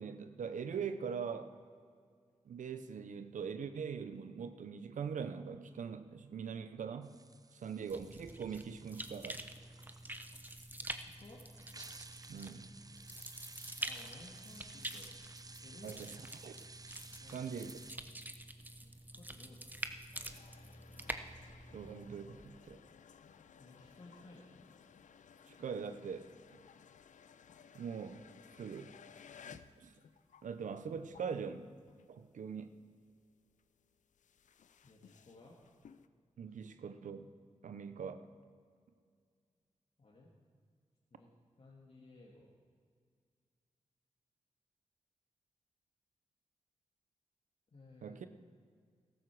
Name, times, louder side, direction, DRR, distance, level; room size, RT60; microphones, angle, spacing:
voice 1, 0.0-1.5 2.5-7.2 7.5-9.4 12.3-12.7 15.8-16.2 16.4-16.5 17.3-17.7 21.7-22.8 25.5-26.3 27.7-28.2 28.6-28.9 29.5-30.0 30.4-31.7 32.1-32.8 36.4-37.3 37.6-38.3 48.0-48.3, right 6 dB, 75° right, 10 dB, 0.7 m, -42 dB
sound 1, 7.0-17.9, right 3 dB, 30° right, 0.6 m, -56 dB
sound 2, 7.9-22.8, right 1 dB, 15° right, 1.0 m, -47 dB
voice 2, 10.9-11.4 13.8-15.1 15.6-16.2 17.1-17.5 18.8-19.8 23.6-24.5 34.8-35.6 40.0-40.3 41.1-41.3 41.6-42.5 47.7-48.2, left 2 dB, 50° left, -3 dB, 2.3 m, -57 dB
sound 3, 20.1-32.4 32.7-36.1, left 7 dB, 70° left, 0.5 m, -59 dB
14.5 x 12.5 x 4.7 m, 2.1 s
supercardioid pair, 40°, 13 cm